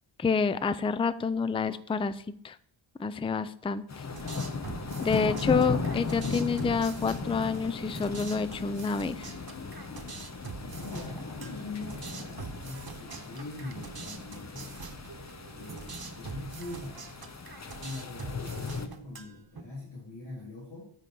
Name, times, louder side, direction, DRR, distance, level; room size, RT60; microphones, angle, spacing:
voice 1, 0.2-2.6 3.0-4.0 5.0-9.3, left 5 dB, 15° left, 13 dB, 0.3 m, -28 dB
sound 1, 3.9-18.9, left 4 dB, 35° left, 0.8 m, -37 dB
sound 2, 4.1-19.6, right 4 dB, 45° right, 1.1 m, -44 dB
voice 2, 5.1-5.8 10.7-14.8 15.5-17.0 17.8-20.9, left 3 dB, 55° left, -7 dB, 3.3 m, -42 dB
9.2 x 4.7 x 5.4 m, 0.63 s
wide cardioid pair, 70°, 49 cm